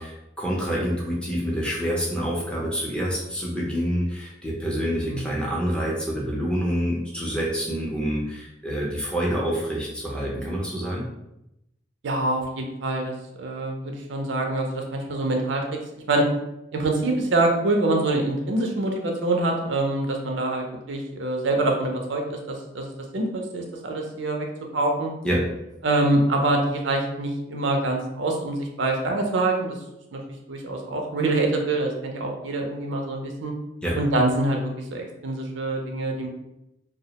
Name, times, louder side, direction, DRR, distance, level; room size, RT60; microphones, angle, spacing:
voice 1, 0.0-11.1 25.2-25.4 33.8-34.0, equal, 5° left, -4 dB, 0.4 m, -27 dB
voice 2, 12.0-15.8 16.1-16.2 16.7-24.5 24.7-25.1 25.8-29.8 30.1-30.2 30.5-33.5 34.0-36.3, right 2 dB, 80° right, 1 dB, 0.5 m, -25 dB
2.2 x 2.1 x 2.8 m, 0.87 s
head